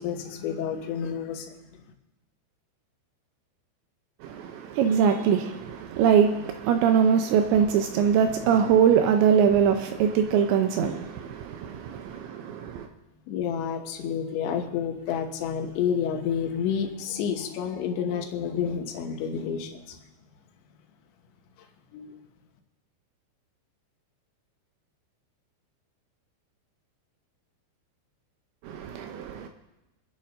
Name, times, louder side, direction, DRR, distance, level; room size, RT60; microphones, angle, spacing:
voice 1, 0.0-1.5 13.3-20.0 21.9-22.1, left 7 dB, 75° left, 3.2 m, -29 dB
voice 2, 4.2-12.9 28.6-29.5, right 7 dB, 80° right, 2.8 m, -23 dB
29.0 x 10.0 x 2.6 m
omnidirectional pair, 5.6 m